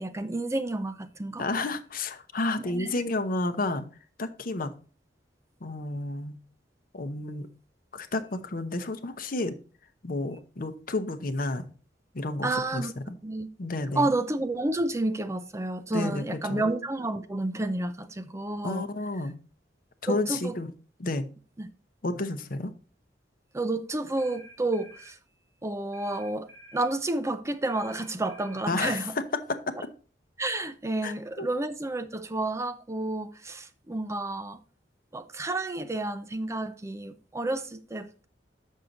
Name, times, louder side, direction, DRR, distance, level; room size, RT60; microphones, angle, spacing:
voice 1, 0.0-1.4 2.6-3.0 12.4-12.9 13.2-13.5 14.0-18.9 20.1-20.5 21.6-21.7 23.5-25.2 25.6-29.1 30.4-34.6 35.1-38.2, right 2 dB, 15° right, 0.5 m, -30 dB
voice 2, 1.4-3.9 4.2-4.7 5.6-6.4 6.9-7.5 7.9-9.6 10.0-11.7 12.1-13.1 13.6-14.1 15.9-16.7 18.6-19.4 20.0-20.7 21.0-21.3 22.0-22.7 28.7-29.2 31.0-31.5, left 2 dB, 50° left, 0.8 m, -31 dB
sound 1, 24.2-25.2 25.9-26.9 27.7-28.7, right 1 dB, 85° right, 4.3 m, -51 dB
7.4 x 6.4 x 3.9 m
head